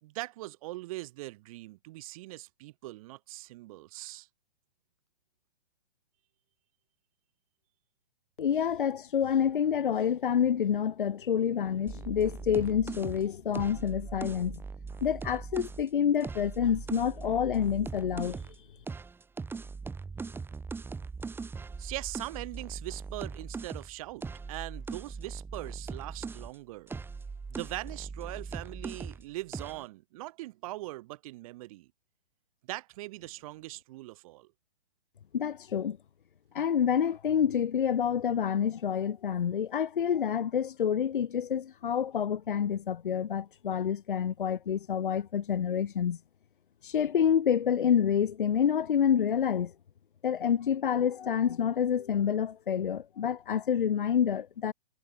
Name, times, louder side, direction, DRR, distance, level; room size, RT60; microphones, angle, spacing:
voice 1, 0.0-4.3 21.8-26.9 27.5-31.9 32.7-34.5, right 19 dB, 35° right, 4.1 m, -41 dB
voice 2, 8.4-14.6 15.0-18.4 35.3-36.0 36.5-46.2 46.8-49.7 50.2-54.7, left 8 dB, 60° left, 1.4 m, -28 dB
sound 1, 11.9-15.8 16.2-18.6 18.9-26.5 26.9-29.2 29.5-29.8, right 4 dB, 5° right, 3.0 m, -40 dB
figure-of-eight pair, 120°, 29 cm